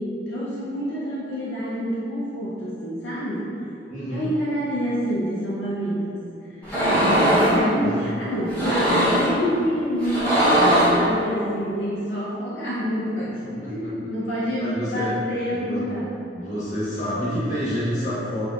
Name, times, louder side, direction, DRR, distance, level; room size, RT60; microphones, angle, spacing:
voice 1, 0.0-3.5 4.1-6.2 6.6-16.1, equal, 80° left, -7 dB, 0.6 m, -27 dB
voice 2, 3.9-4.3 7.8-7.9 13.4-13.9 14.6-15.2 15.5-15.8 16.3-18.5, equal, 40° left, -10 dB, 1.1 m, -28 dB
sound 1, 6.6-7.6 8.5-9.3 10.0-11.0, right 1 dB, 10° left, 1.3 m, -19 dB
4.1 x 2.8 x 2.4 m, 2.6 s
head